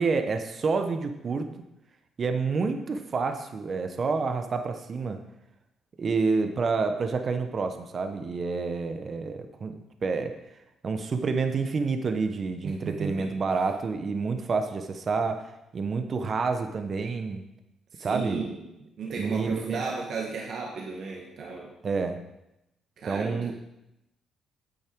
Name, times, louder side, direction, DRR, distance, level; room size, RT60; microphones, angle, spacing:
voice 1, 0.0-1.5 2.2-5.2 6.0-9.7 10.0-10.3 10.8-15.5 15.7-17.4 18.0-18.5 19.1-19.8 21.8-22.2 23.0-23.5, right 4 dB, 45° right, 7 dB, 1.0 m, -28 dB
voice 2, 12.6-13.3 17.9-18.7 19.0-21.7 23.0-23.5, right 4 dB, 65° right, -2 dB, 1.8 m, -34 dB
9.7 x 8.3 x 4.6 m, 0.87 s
cardioid pair, 90°, 0 cm